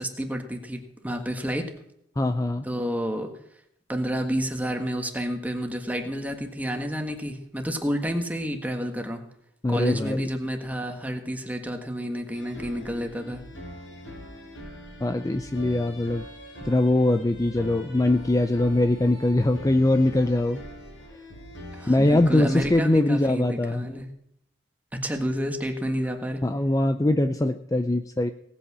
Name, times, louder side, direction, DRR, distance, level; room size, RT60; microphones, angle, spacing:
voice 1, 0.0-1.7 2.6-3.3 3.9-9.2 9.7-13.4 21.7-24.1 24.9-26.4, equal, 10° right, 4 dB, 1.5 m, -30 dB
voice 2, 2.2-2.6 9.6-10.2 15.0-16.3 16.6-20.6 21.9-23.8 26.4-28.3, left 1 dB, 20° left, 8 dB, 0.5 m, -22 dB
sound 1, 12.3-22.7, equal, 90° left, 5.0 m, -42 dB
18.0 x 8.5 x 6.1 m, 0.76 s
head